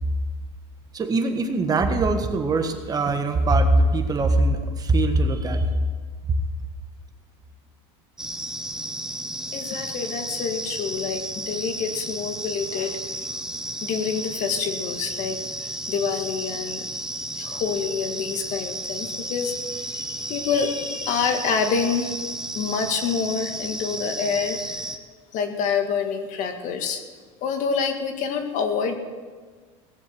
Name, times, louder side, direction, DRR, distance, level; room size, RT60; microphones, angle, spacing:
voice 1, 0.9-5.7, right 2 dB, 25° right, 6 dB, 1.5 m, -21 dB
sound 1, 8.2-25.0, right 1 dB, 5° right, 0.9 m, -33 dB
voice 2, 9.5-13.3 13.8-17.0 17.4-22.2 22.5-24.9 25.3-27.0 27.4-28.9, left 6 dB, 55° left, 6 dB, 1.9 m, -27 dB
18.0 x 7.2 x 7.7 m, 1.5 s
supercardioid pair, 120°, 15 cm